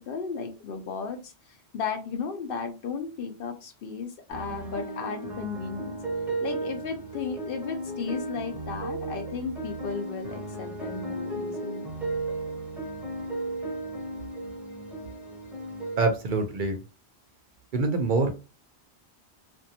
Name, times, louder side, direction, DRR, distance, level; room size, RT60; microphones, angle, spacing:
voice 1, 0.1-6.0 6.4-11.9, left 5 dB, 65° left, 5 dB, 0.7 m, -35 dB
sound 1, 4.3-16.0, right 2 dB, ahead, 0.6 m, -35 dB
voice 2, 16.0-16.8 17.7-18.3, right 3 dB, 60° right, 5 dB, 0.6 m, -25 dB
2.6 x 2.2 x 2.7 m, 0.30 s
omnidirectional pair, 1.1 m